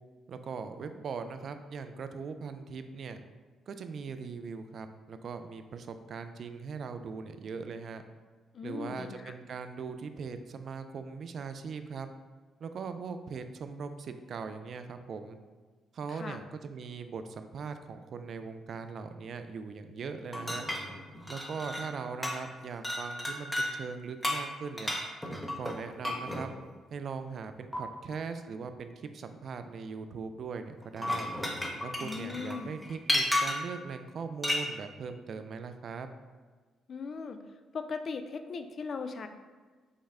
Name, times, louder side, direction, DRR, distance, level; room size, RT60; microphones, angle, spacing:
voice 1, 0.3-3.2 3.7-8.0 8.6-12.1 12.6-15.4 15.9-20.7 21.3-24.9 25.6-26.5 26.9-31.3 31.8-36.1, right 5 dB, 55° right, 9 dB, 0.3 m, -40 dB
voice 2, 8.5-9.3 16.1-16.4 32.0-32.7 36.9-37.4 37.7-39.3, left 5 dB, 50° left, 8 dB, 0.3 m, -38 dB
sound 1, 20.3-22.0 22.2-22.5 22.8-23.7 24.2-26.5 27.7-27.8 30.8-33.7 34.4-34.7, left 1 dB, 5° left, 0.7 m, -33 dB
5.3 x 2.1 x 3.5 m, 1.4 s
cardioid pair, 90°, 0 cm